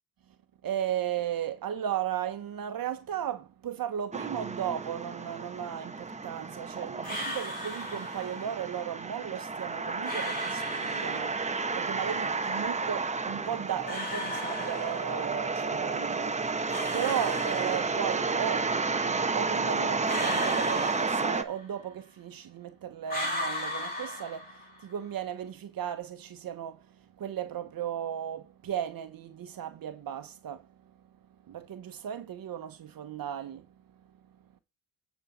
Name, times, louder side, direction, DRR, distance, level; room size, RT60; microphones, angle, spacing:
voice 1, 0.6-34.6, right 10 dB, 55° right, 1.2 m, -36 dB
sound 1, 4.1-21.4, right 4 dB, 15° right, 1.0 m, -32 dB
sound 2, 7.0-8.5 10.0-11.5 13.9-15.4 16.7-18.3 20.1-21.8 23.1-24.9, left 1 dB, 20° left, 6.4 m, -37 dB
9.2 x 4.5 x 7.3 m
cardioid pair, 90°, 42 cm